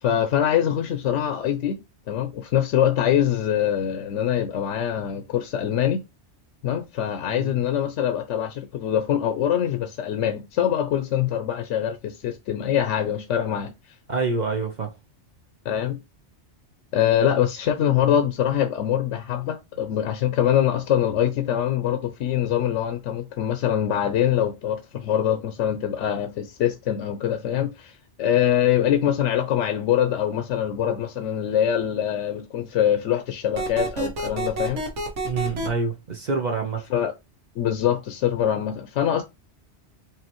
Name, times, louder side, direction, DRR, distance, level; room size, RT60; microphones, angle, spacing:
voice 1, 0.0-1.8 2.1-6.0 6.6-13.9 15.7-16.0 16.9-34.8 36.9-37.1 37.6-39.2, left 10 dB, 80° left, 0.9 m, -24 dB
voice 2, 14.1-14.9 35.2-36.8, right 4 dB, 45° right, 0.7 m, -26 dB
sound 1, 33.6-35.7, right 2 dB, 80° right, 1.4 m, -28 dB
4.7 x 2.7 x 3.0 m
omnidirectional pair, 1.2 m